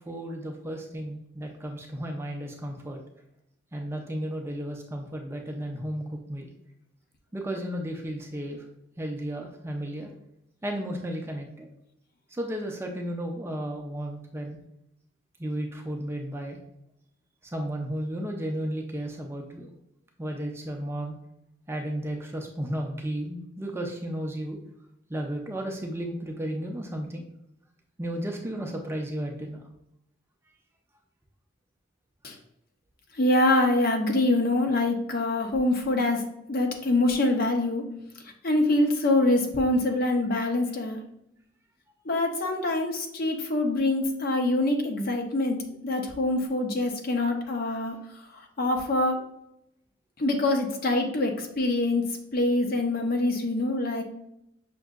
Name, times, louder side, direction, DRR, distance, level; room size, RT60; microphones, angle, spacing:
voice 1, 0.1-3.0 3.7-6.5 7.3-8.6 9.0-10.1 10.6-11.7 12.3-14.6 15.4-16.6 17.5-19.7 20.2-21.2 21.7-24.6 25.1-27.2 28.0-29.6, right 1 dB, 10° right, 1 dB, 0.4 m, -33 dB
voice 2, 33.2-36.2 36.5-37.8 38.4-41.0 42.1-45.6 45.8-48.0 48.6-49.2 50.2-52.0 52.3-54.0, left 2 dB, 45° left, 3 dB, 0.6 m, -24 dB
5.9 x 2.7 x 2.4 m, 0.81 s
head